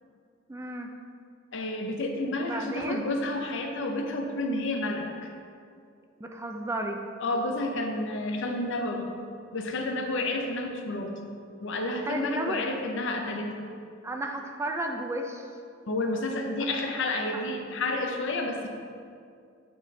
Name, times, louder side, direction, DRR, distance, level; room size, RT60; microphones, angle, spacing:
voice 1, 0.5-0.9 2.4-3.0 6.2-7.0 12.1-12.6 14.0-15.5 17.3-17.4, right 1 dB, 15° right, 3 dB, 0.4 m, -33 dB
voice 2, 1.5-5.3 7.2-9.1 9.5-11.2 11.6-13.6 15.9-18.7, left 2 dB, 65° left, 3 dB, 0.7 m, -30 dB
8.7 x 4.2 x 3.3 m, 2.3 s
head